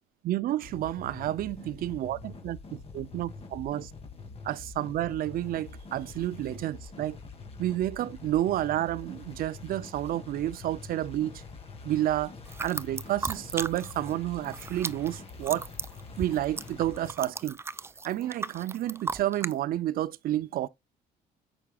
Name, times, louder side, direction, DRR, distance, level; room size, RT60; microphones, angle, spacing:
voice 1, 0.2-3.9 4.4-7.2 7.6-11.3 11.8-12.3 12.6-15.7 16.2-17.6 18.0-20.7, right 13 dB, 60° right, 0.6 m, -30 dB
sound 1, 0.6-17.1, left 4 dB, 35° left, 2.5 m, -45 dB
sound 2, 12.5-14.1 14.4-19.5, right 4 dB, 15° right, 0.4 m, -36 dB
8.3 x 6.2 x 2.4 m
cardioid pair, 110°, 17 cm